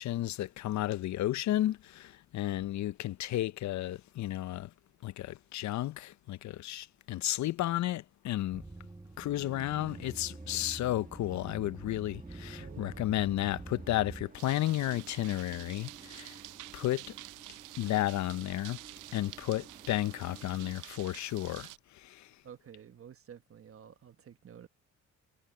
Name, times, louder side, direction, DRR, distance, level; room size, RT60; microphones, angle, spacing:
voice 1, 0.0-4.7 5.0-8.6 9.2-16.4 16.7-17.2 17.8-18.8 19.1-22.3, left 14 dB, 70° left, 0.6 m, -33 dB
sound 1, 8.5-14.2, right 2 dB, 10° right, 1.0 m, -46 dB
sound 2, 9.4-20.7, right 4 dB, 25° right, 1.9 m, -55 dB
voice 2, 12.6-13.1 22.4-24.7, right 8 dB, 50° right, 1.3 m, -51 dB
sound 3, 14.4-21.8, right 18 dB, 90° right, 0.6 m, -49 dB
cardioid pair, 90°, 30 cm